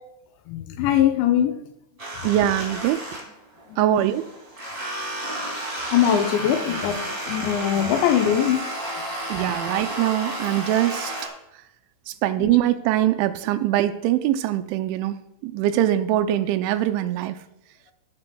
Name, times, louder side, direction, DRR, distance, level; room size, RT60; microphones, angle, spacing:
voice 1, 0.5-1.7 2.2-2.3 3.7-3.9 5.9-8.6 12.4-12.5, left 10 dB, 80° left, 2.8 m, -22 dB
sound 1, 2.0-3.6 3.9-11.3, right 1 dB, 20° right, 0.9 m, -32 dB
voice 2, 2.2-3.0 3.8-4.2 9.3-11.1 12.2-15.2 15.4-17.4, right 12 dB, 85° right, 2.9 m, -22 dB
17.5 x 7.5 x 2.2 m
omnidirectional pair, 5.4 m